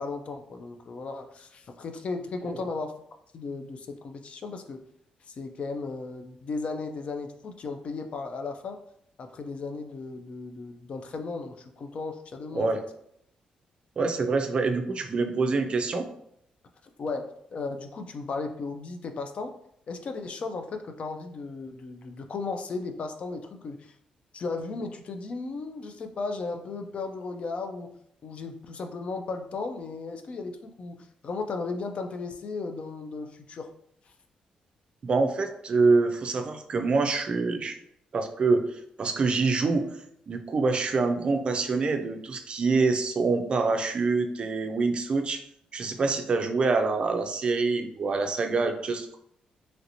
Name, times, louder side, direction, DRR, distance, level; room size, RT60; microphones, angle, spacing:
voice 1, 0.0-2.9 3.3-4.8 5.3-8.8 9.2-12.7 17.0-19.5 19.9-23.9 24.3-27.9 28.2-33.7, left 3 dB, 50° left, 6 dB, 0.4 m, -35 dB
voice 2, 14.0-16.1 35.0-37.8 38.1-40.0 40.3-45.4 45.7-49.2, right 4 dB, 45° right, 6 dB, 0.4 m, -26 dB
3.1 x 2.8 x 2.6 m, 0.72 s
cardioid pair, 95°, 3 cm